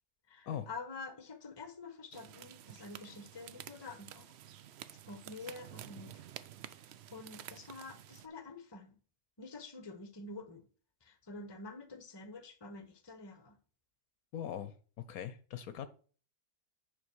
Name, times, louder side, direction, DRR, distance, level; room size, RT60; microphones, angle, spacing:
voice 1, 0.3-4.3 4.9-6.2 6.7-9.0 9.4-10.7 11.0-13.6, left 3 dB, 20° left, 0.9 m, -48 dB
sound 1, 2.1-8.3, right 11 dB, 75° right, 0.6 m, -51 dB
voice 2, 14.3-14.7 15.1-15.9, left 9 dB, 70° left, 1.1 m, -40 dB
9.8 x 3.9 x 6.2 m
omnidirectional pair, 1.7 m